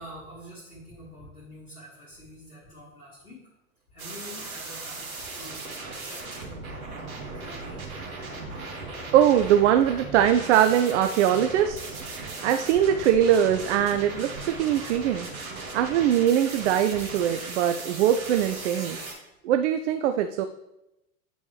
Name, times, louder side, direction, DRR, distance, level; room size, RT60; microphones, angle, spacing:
voice 1, 0.0-3.4 3.9-6.2 7.3-7.9, equal, 85° left, -7 dB, 2.0 m, -46 dB
sound 1, 4.0-19.1, right 3 dB, 70° right, 1.7 m, -37 dB
voice 2, 9.1-15.3 15.7-19.0 19.4-20.5, right 10 dB, 55° right, 8 dB, 0.5 m, -22 dB
8.6 x 5.1 x 3.2 m, 0.88 s
figure-of-eight pair, 80°, 43 cm